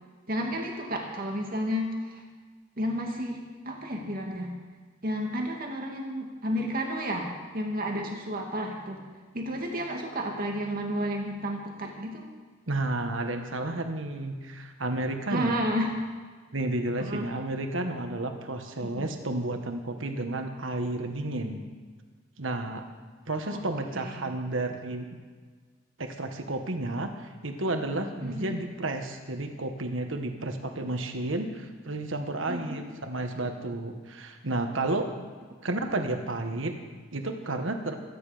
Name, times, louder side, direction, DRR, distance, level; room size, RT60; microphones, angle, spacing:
voice 1, 0.3-2.2 2.8-3.4 3.6-4.5 5.0-9.0 9.3-12.3 15.3-15.9 17.0-17.3 18.8-19.1 23.5-23.6 23.9-24.2 28.2-28.5 32.5-32.8, equal, 45° right, 0 dB, 2.3 m, -31 dB
voice 2, 12.7-15.5 16.5-21.6 22.4-22.9 23.3-25.0 26.0-35.1 35.6-36.7 37.1-38.0, right 2 dB, 75° right, 5 dB, 1.5 m, -31 dB
24.5 x 9.9 x 5.1 m, 1.5 s
head